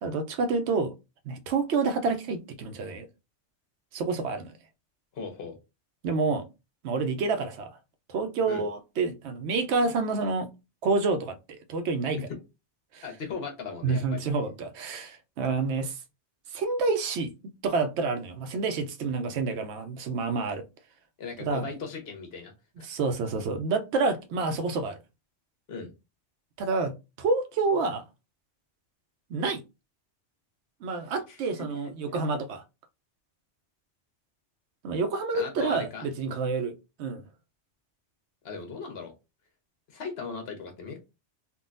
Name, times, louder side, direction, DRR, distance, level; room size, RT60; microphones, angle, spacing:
voice 1, 0.0-0.9 1.2-3.1 3.9-4.5 6.0-6.5 6.8-7.8 8.1-10.5 10.8-12.2 12.9-13.0 13.8-16.0 16.5-17.3 17.6-20.6 21.4-21.7 22.8-25.0 26.6-28.0 29.3-29.6 30.8-32.6 34.8-37.2, right 4 dB, 75° right, 0.9 m, -28 dB
voice 2, 5.1-5.6 8.5-8.6 12.1-12.2 13.0-14.2 21.2-22.5 22.8-22.9 25.7-25.9 31.3-31.4 35.3-36.1 38.4-39.1 39.9-41.0, left 5 dB, 60° left, 1.1 m, -37 dB
3.6 x 2.3 x 2.5 m
omnidirectional pair, 1.2 m